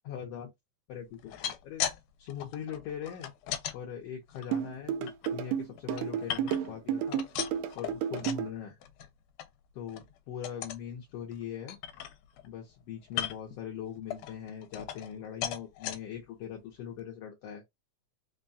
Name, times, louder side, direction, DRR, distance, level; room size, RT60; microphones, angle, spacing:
voice 1, 0.0-0.5 0.9-1.8 2.2-3.3 3.7-7.2 7.7-8.7 9.7-11.8 12.4-17.6, left 8 dB, 70° left, 1.6 m, -41 dB
sound 1, 1.1-2.0 2.3-3.8 4.3-5.3 5.8-6.8 7.1-8.5 8.8-9.1 9.4-9.5 9.9-10.1 10.4-10.8 11.3-11.4 11.7-12.5 13.1-13.6 14.1-15.2 15.4-16.0 16.6-16.7 17.0-17.1, left 11 dB, 85° left, 2.0 m, -37 dB
sound 2, 4.5-8.5, right 9 dB, 80° right, 1.6 m, -31 dB
5.4 x 2.2 x 2.6 m
omnidirectional pair, 3.5 m